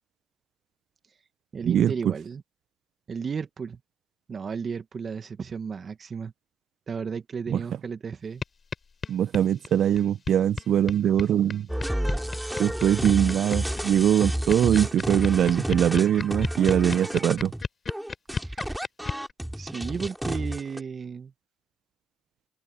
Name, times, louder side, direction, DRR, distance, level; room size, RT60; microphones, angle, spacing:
voice 1, 1.5-2.4 3.1-3.8 4.3-6.3 6.9-8.4 18.4-18.8 19.6-21.3, right 6 dB, 45° right, 2.0 m, -34 dB
sound 1, 8.4-8.5 8.7-8.8 9.0-19.3, left 5 dB, 40° left, 4.7 m, -32 dB
voice 2, 9.1-11.7 12.6-17.5, right 10 dB, 60° right, 0.8 m, -22 dB
sound 2, 11.7-20.8, equal, 5° right, 4.0 m, -31 dB
hypercardioid pair, 60°, 0 cm